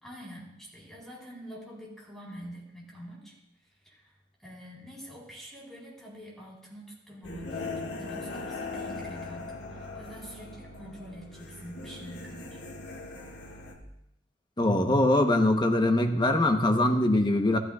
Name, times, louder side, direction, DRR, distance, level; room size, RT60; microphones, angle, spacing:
voice 1, 0.0-3.3 3.8-4.1 4.4-12.6, equal, ahead, -6 dB, 4.0 m, -46 dB
sound 1, 7.2-13.8, left 3 dB, 85° left, 1.8 m, -39 dB
voice 2, 14.6-17.6, left 1 dB, 25° left, 5 dB, 0.9 m, -23 dB
14.0 x 13.0 x 2.4 m, 0.81 s
head